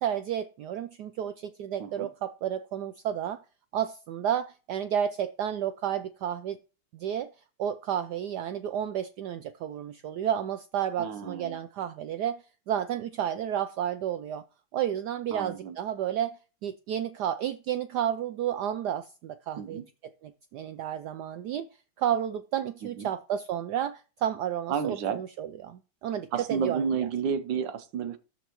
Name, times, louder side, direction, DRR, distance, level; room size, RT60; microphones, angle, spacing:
voice 1, 0.0-3.4 3.7-6.6 6.9-7.3 7.6-12.4 12.7-14.4 14.7-16.4 16.6-19.8 20.2-21.7 22.0-26.8, right 10 dB, 85° right, 0.9 m, -31 dB
voice 2, 11.0-11.6 15.3-15.8 19.6-19.8 22.8-23.1 24.7-25.2 26.3-28.2, right 7 dB, 65° right, 1.5 m, -31 dB
13.0 x 4.5 x 3.0 m
omnidirectional pair, 2.3 m